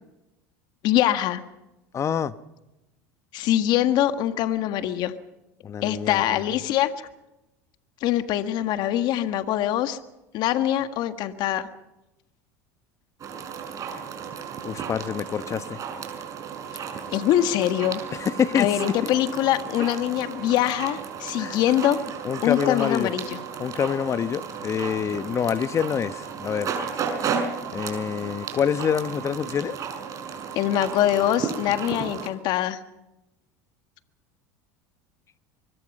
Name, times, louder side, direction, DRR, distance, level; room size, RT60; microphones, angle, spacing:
voice 1, 0.8-1.4 3.3-5.1 5.8-6.9 8.0-10.0 10.3-11.7 17.1-18.0 18.5-22.0 22.4-23.4 30.5-32.8, left 12 dB, 60° left, 10 dB, 1.6 m, -23 dB
voice 2, 1.9-2.3 5.6-6.4 14.6-15.8 18.1-18.7 21.4-21.6 22.2-23.1 23.6-26.7 27.7-29.8, left 8 dB, 35° left, 14 dB, 1.2 m, -26 dB
sound 1, 13.2-32.3, right 6 dB, 40° right, 5.9 m, -34 dB
24.5 x 22.5 x 5.5 m, 0.95 s
supercardioid pair, 95°, 9 cm